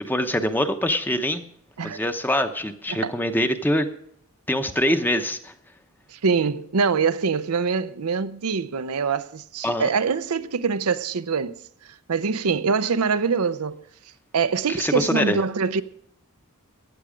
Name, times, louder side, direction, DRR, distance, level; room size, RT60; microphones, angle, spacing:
voice 1, 0.0-1.4 1.8-3.9 4.5-5.5 9.6-9.9 14.7-15.4, left 1 dB, 10° left, 0.8 m, -24 dB
voice 2, 6.1-13.8 14.3-15.8, right 5 dB, 90° right, 0.6 m, -24 dB
15.5 x 9.6 x 5.0 m
head